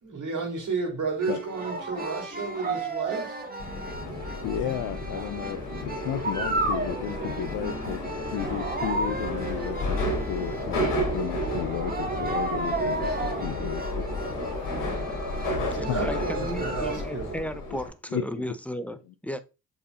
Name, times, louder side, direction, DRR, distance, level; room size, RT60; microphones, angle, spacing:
voice 1, 0.0-3.4 15.6-17.3, right 4 dB, 45° right, 3.8 m, -32 dB
sound 1, 1.2-17.0, right 2 dB, 20° right, 2.0 m, -34 dB
Subway metro underground, 3.6-17.9, left 1 dB, 75° left, 3.0 m, -32 dB
voice 2, 4.4-8.0 8.2-14.0 14.4-14.6 15.9-16.1 18.1-18.4, left 10 dB, 60° left, 0.7 m, -33 dB
voice 3, 15.7-19.4, equal, 5° left, 0.8 m, -35 dB
6.9 x 5.0 x 2.7 m
hypercardioid pair, 40°, 42 cm